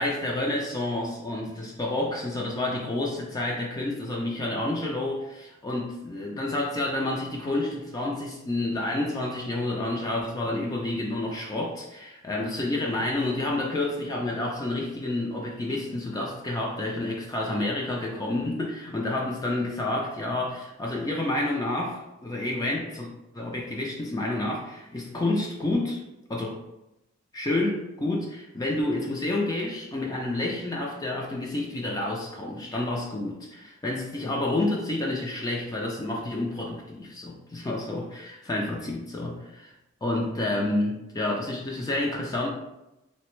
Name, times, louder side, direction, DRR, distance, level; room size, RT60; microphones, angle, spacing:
voice 1, 0.0-23.1 23.3-26.0 26.3-26.6 27.3-39.7 40.0-42.5, left 2 dB, 20° left, -1 dB, 0.4 m, -29 dB
3.1 x 2.1 x 3.0 m, 0.92 s
head